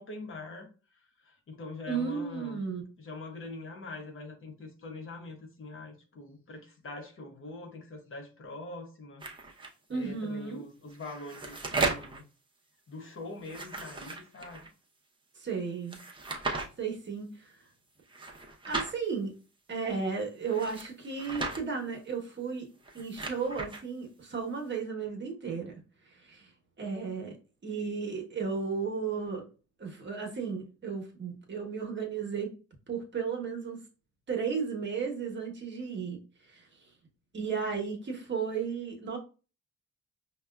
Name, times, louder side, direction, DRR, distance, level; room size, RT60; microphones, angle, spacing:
voice 1, 0.0-2.6 3.0-9.2 9.9-12.2 12.9-14.6, left 2 dB, 45° left, 0.9 m, -43 dB
voice 2, 1.9-2.8 9.9-10.6 15.4-16.0 16.8-17.5 18.7-19.4 19.7-22.7 22.9-25.7 26.1-26.5 26.8-27.4 27.6-29.5 29.8-32.5 32.9-33.8 34.3-36.2 36.5-36.7 37.3-39.2, right 5 dB, 40° right, 1.0 m, -34 dB
sound 1, 9.2-9.7 10.9-12.2 13.4-14.7 15.9-16.7 18.1-18.9 20.4-21.6 22.7-23.8, right 3 dB, 15° right, 0.7 m, -35 dB
5.1 x 2.2 x 2.3 m
cardioid pair, 90°, 30 cm